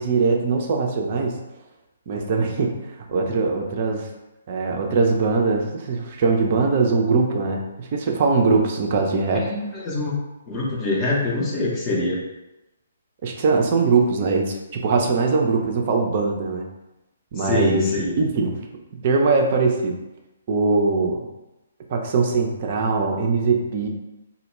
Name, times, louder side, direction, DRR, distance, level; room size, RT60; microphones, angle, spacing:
voice 1, 0.0-1.4 2.1-2.8 3.1-4.1 4.5-9.5 13.2-16.7 17.3-17.8 18.2-18.6 18.9-20.0 20.5-21.3 21.9-23.9, right 4 dB, 40° right, 2 dB, 0.4 m, -21 dB
voice 2, 9.5-10.2 10.5-12.2 17.4-18.1, left 2 dB, 20° left, -3 dB, 0.5 m, -24 dB
2.1 x 2.1 x 3.0 m, 0.97 s
figure-of-eight pair, 130°, 0 cm